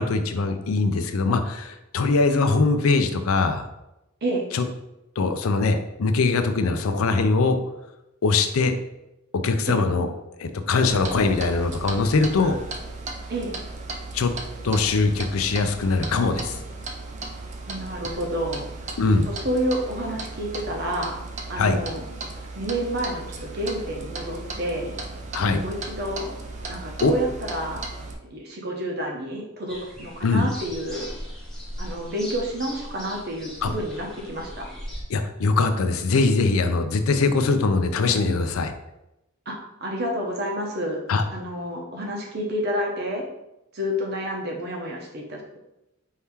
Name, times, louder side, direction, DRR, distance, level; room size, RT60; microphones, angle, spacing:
voice 1, 0.0-3.7 4.5-4.7 5.2-7.6 8.2-8.7 9.4-10.1 10.4-12.6 14.1-14.3 14.6-16.6 19.0-19.3 21.6-21.8 25.3-25.6 27.0-27.1 30.2-30.5 33.6-33.7 35.1-38.7 41.1-41.2, left 3 dB, 85° left, 8 dB, 0.5 m, -22 dB
Clock, 10.9-28.1, right 3 dB, 35° right, 0.4 m, -36 dB
voice 2, 17.7-18.9 19.3-21.2 21.5-22.0 22.6-24.9 25.6-26.3 26.7-27.8 28.3-31.1 31.8-34.7 39.5-41.0 41.3-43.2 43.7-45.6, equal, 50° right, 0 dB, 0.9 m, -29 dB
sound 1, 29.7-35.0, equal, ahead, 0.8 m, -38 dB
4.5 x 2.8 x 3.5 m, 0.91 s
head